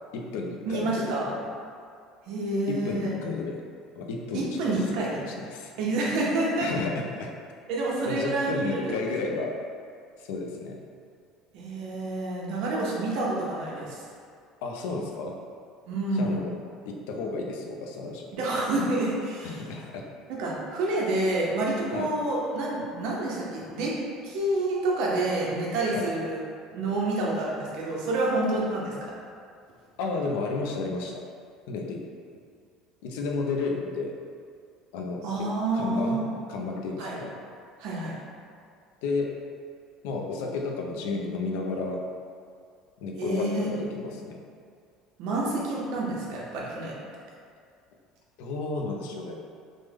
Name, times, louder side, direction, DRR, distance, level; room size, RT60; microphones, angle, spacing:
voice 1, 0.1-1.4 2.7-3.6 4.0-4.8 5.2-5.7 6.6-7.3 8.1-9.5 10.2-10.8 14.6-15.3 16.1-16.5 16.8-18.3 19.4-20.0 21.9-22.1 25.9-26.1 30.0-31.2 31.7-32.0 33.0-34.2 34.9-35.5 35.7-36.2 36.5-37.3 39.0-39.3 40.0-42.0 43.0-44.4 48.4-49.3, left 3 dB, 85° left, 1 dB, 0.4 m, -32 dB
voice 2, 0.7-1.3 2.3-3.1 4.3-5.2 5.8-6.7 7.7-9.4 11.5-14.0 15.9-16.4 18.3-19.6 20.3-23.9 24.2-26.4 26.7-29.1 35.2-36.3 37.0-37.1 37.8-38.1 43.2-43.7 45.2-46.9, right 2 dB, 55° right, -4 dB, 0.6 m, -28 dB
3.3 x 2.1 x 3.3 m, 2.3 s
cardioid pair, 180°, 0 cm